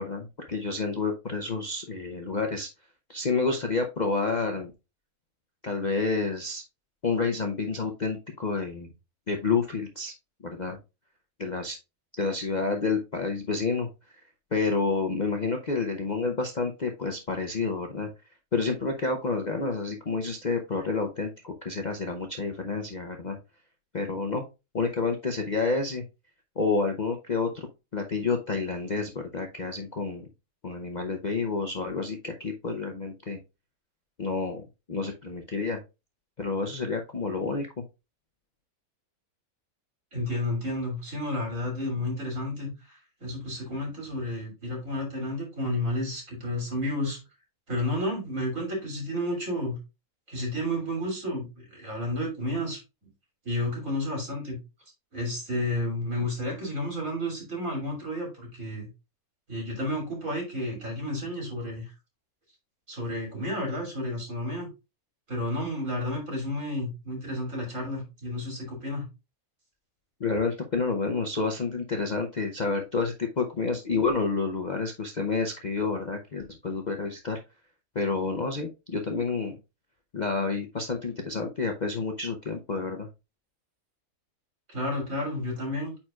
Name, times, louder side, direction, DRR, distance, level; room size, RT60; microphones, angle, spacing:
voice 1, 0.0-2.7 3.1-4.7 5.6-6.6 7.0-8.9 9.3-10.1 10.4-10.8 11.4-11.8 12.2-13.9 14.5-18.1 18.5-23.4 23.9-24.4 24.7-26.0 26.6-27.7 27.9-30.3 30.6-33.4 34.2-35.8 36.4-37.7 70.2-77.4 77.9-79.6 80.1-83.1, left 4 dB, 40° left, 3 dB, 0.7 m, -29 dB
voice 2, 40.1-47.2 47.7-49.8 50.3-52.8 53.4-54.6 55.1-58.9 59.5-61.9 62.9-64.7 65.3-69.0 84.7-85.9, left 1 dB, 60° right, 0 dB, 3.4 m, -31 dB
9.0 x 4.4 x 2.4 m, 0.26 s
omnidirectional pair, 1.6 m